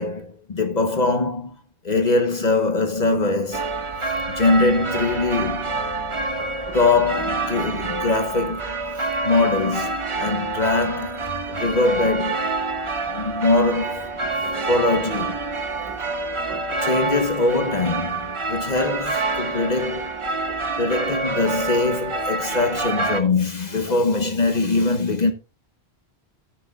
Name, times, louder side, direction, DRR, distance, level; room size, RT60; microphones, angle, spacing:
voice 1, 0.0-1.5 1.8-3.7 4.3-5.7 6.7-8.7 9.2-11.2 11.5-12.4 13.1-14.1 14.7-15.4 16.8-20.1 20.8-25.3, left 3 dB, 45° left, 1.0 m, -22 dB
Church Bells, 3.5-23.2, right 3 dB, 30° right, 0.9 m, -27 dB
voice 2, 6.4-6.8 14.4-15.0 15.8-17.0 20.5-20.6 20.9-21.0 23.9-24.0, right 2 dB, 65° right, 2.1 m, -40 dB
13.0 x 9.0 x 2.3 m
omnidirectional pair, 1.1 m